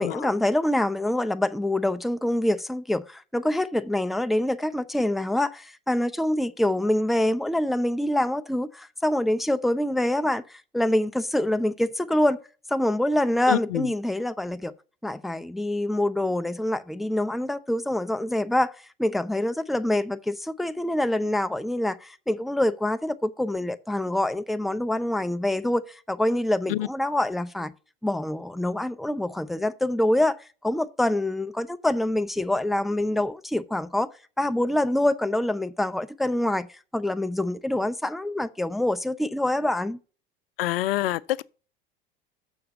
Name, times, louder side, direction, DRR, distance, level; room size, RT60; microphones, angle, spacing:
voice 1, 0.0-12.4 12.7-14.7 15.0-18.7 19.0-27.7 28.0-30.4 30.6-34.1 34.4-36.7 36.9-40.0, left 1 dB, ahead, 0.4 m, -25 dB
voice 2, 13.5-13.9 26.7-26.9 40.6-41.4, left 15 dB, 70° left, 0.5 m, -26 dB
7.0 x 6.7 x 5.2 m
hypercardioid pair, 75°, 29 cm